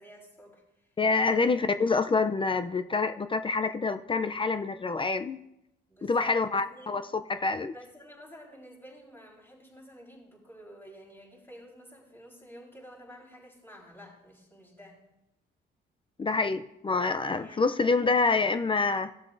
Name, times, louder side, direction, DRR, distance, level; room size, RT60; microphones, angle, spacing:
voice 1, 0.0-1.8 5.9-7.0 7.7-15.0 17.3-17.7, equal, 10° left, -9 dB, 4.1 m, -51 dB
voice 2, 1.0-5.4 6.0-7.0 7.3-7.7 16.2-19.1, left 4 dB, 25° left, 10 dB, 0.5 m, -26 dB
16.5 x 7.2 x 2.6 m, 0.85 s
cardioid pair, 90°, 20 cm